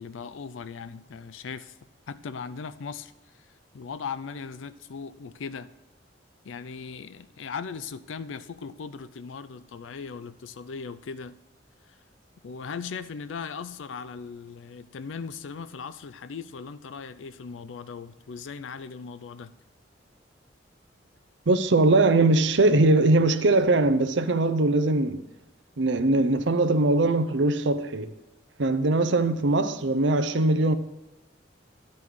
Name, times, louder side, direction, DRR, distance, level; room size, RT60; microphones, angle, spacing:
voice 1, 0.0-1.8 2.1-3.4 3.7-5.7 6.4-11.4 12.4-19.5, left 5 dB, 85° left, 0.5 m, -38 dB
voice 2, 21.5-25.3 25.8-28.1 28.6-30.8, right 2 dB, 70° right, 0.6 m, -21 dB
11.0 x 5.3 x 6.2 m
head